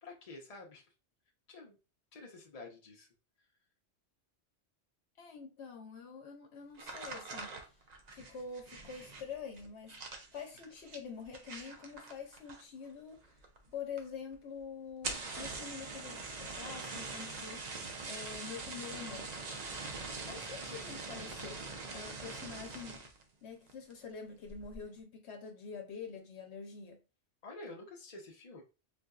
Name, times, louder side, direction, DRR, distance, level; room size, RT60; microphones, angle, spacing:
voice 1, 0.0-0.8 1.5-1.8 2.1-3.1 27.4-28.6, left 2 dB, 35° left, 0.8 m, -49 dB
voice 2, 5.2-7.7 8.1-13.4 13.7-19.3 20.3-21.7 21.9-23.0 23.4-27.0, left 6 dB, 75° left, 1.0 m, -46 dB
sound 1, 6.7-12.9 13.2-13.7 14.0-14.1 14.3-14.4 14.9-23.2 23.7-24.0 24.4-24.8, right 3 dB, 50° right, 0.6 m, -43 dB
4.0 x 2.6 x 2.3 m
omnidirectional pair, 1.1 m